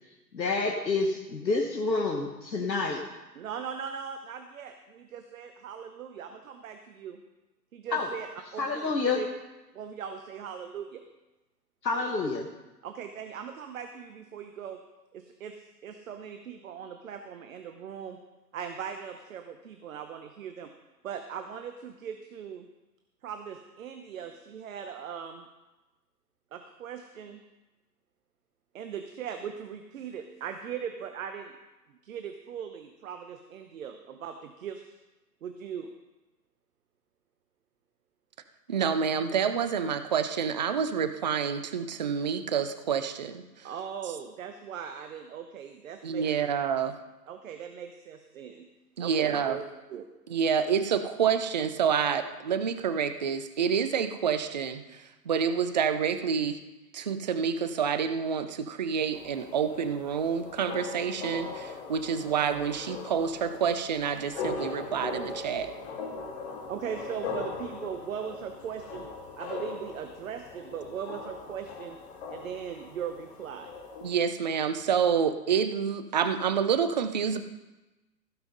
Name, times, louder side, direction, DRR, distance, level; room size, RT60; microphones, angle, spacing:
voice 1, 0.3-3.0 7.9-8.1 8.6-9.2 11.8-12.5, left 3 dB, 85° left, 2 dB, 1.4 m, -28 dB
voice 2, 3.3-7.2 7.7-8.3 8.5-9.3 9.7-11.0 12.8-14.8 15.1-18.2 18.5-20.7 21.0-22.7 23.2-25.4 26.5-27.4 28.7-31.5 32.0-34.9 35.4-35.9 43.6-46.5 47.3-48.7 49.0-49.6 49.9-50.1 62.1-62.3 66.7-69.1 69.4-72.0 72.3-73.7, right 8 dB, 55° right, 7 dB, 1.0 m, -39 dB
voice 3, 38.7-43.7 46.0-47.0 49.0-49.6 50.3-56.6 56.9-65.7 74.0-77.4, right 7 dB, 30° right, 10 dB, 0.4 m, -28 dB
sound 1, 59.1-74.1, left 4 dB, 40° left, 1.8 m, -40 dB
16.0 x 5.7 x 5.3 m, 1.1 s
figure-of-eight pair, 120°, 50 cm